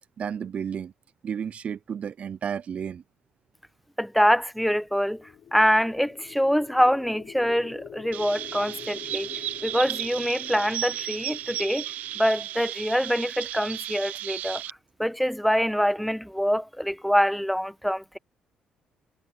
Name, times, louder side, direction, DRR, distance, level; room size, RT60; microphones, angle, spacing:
voice 1, 0.2-0.9 1.2-3.0, right 7 dB, 50° right, 0.5 m, -32 dB
voice 2, 4.0-9.3 9.6-11.9 12.2-14.6 15.0-18.2, equal, ahead, 1.3 m, -25 dB
sound 1, 5.1-13.2, left 10 dB, 60° left, 1.5 m, -46 dB
Chirp tweet, 8.1-14.7, right 13 dB, 75° right, 0.9 m, -34 dB
supercardioid pair, 60°, 3 cm